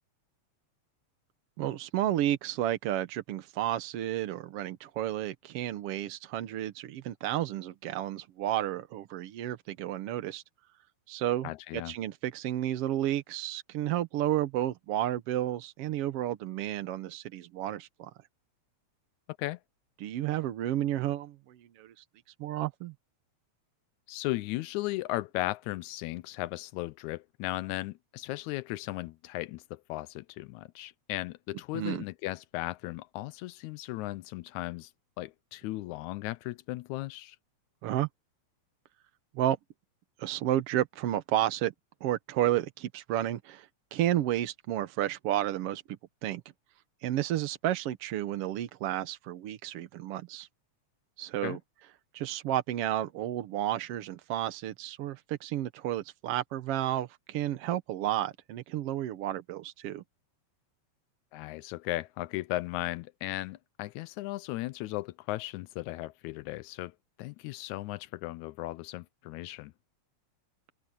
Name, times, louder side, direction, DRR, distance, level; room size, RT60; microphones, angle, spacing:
voice 1, 1.6-10.4 11.1-18.1 20.0-22.0 22.4-22.9 31.7-32.0 37.8-38.1 39.3-39.6 40.2-41.7 42.0-46.4 47.0-50.5 51.2-51.6 52.1-60.0, right 13 dB, 65° right, 1.6 m, -32 dB
voice 2, 11.4-12.0 19.4-19.6 24.1-34.9 35.2-37.4 51.4-51.6 61.3-69.7, left 18 dB, 85° left, 2.0 m, -36 dB
open air
omnidirectional pair, 3.3 m